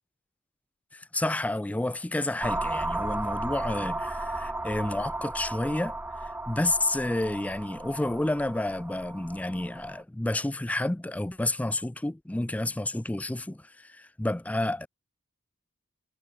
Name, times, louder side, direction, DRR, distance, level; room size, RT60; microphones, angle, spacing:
voice 1, 0.9-5.9 6.2-14.9, left 1 dB, 5° left, 0.4 m, -30 dB
sound 1, 2.4-10.0, right 2 dB, 10° right, 1.5 m, -34 dB
head